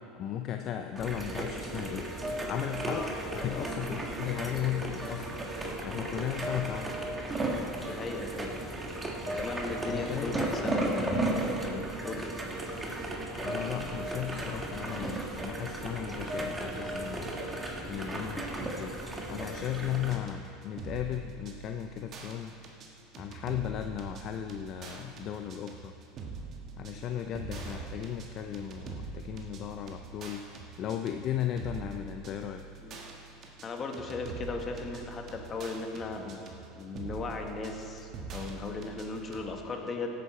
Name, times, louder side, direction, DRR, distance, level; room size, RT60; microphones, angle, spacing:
voice 1, 0.1-2.1 2.5-5.4 5.8-6.9 9.9-10.4 13.4-17.4 17.9-19.0 19.3-22.6 23.2-25.9 26.8-30.4 30.8-32.6, left 10 dB, 50° left, 6 dB, 0.6 m, -36 dB
sound 1, 1.0-20.1, right 1 dB, 15° right, 1.8 m, -35 dB
voice 2, 7.8-8.6 9.2-12.3 32.8-33.0 33.6-40.1, left 3 dB, 35° left, 3 dB, 1.6 m, -37 dB
sound 2, 19.9-39.5, right 4 dB, 45° right, 1.8 m, -44 dB
16.0 x 9.2 x 4.4 m, 2.8 s
hypercardioid pair, 95°, 0 cm